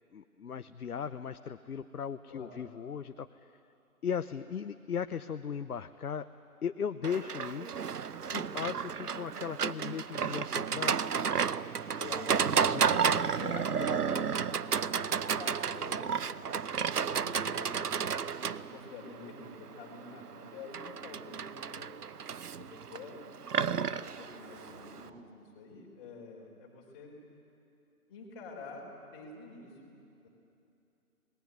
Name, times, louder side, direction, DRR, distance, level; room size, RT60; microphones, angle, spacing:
voice 1, 0.1-3.6 4.0-6.3 6.6-7.7 8.3-11.1 12.7-12.8, left 7 dB, 75° left, 10 dB, 0.8 m, -37 dB
Livestock farm animals working animals, 7.0-25.1, right 7 dB, 90° right, 0.8 m, -32 dB
sound 1, 8.1-11.1 14.5-19.9 23.4-25.2, right 1 dB, 45° right, 4.4 m, -55 dB
voice 2, 12.0-12.3 12.7-14.5 14.8-16.2 16.6-21.9 22.5-23.2 23.7-27.2 28.1-29.9 30.2-30.3, left 3 dB, 20° left, -2 dB, 3.9 m, -47 dB
26.5 x 19.5 x 9.3 m, 2.7 s
figure-of-eight pair, 160°, 45 cm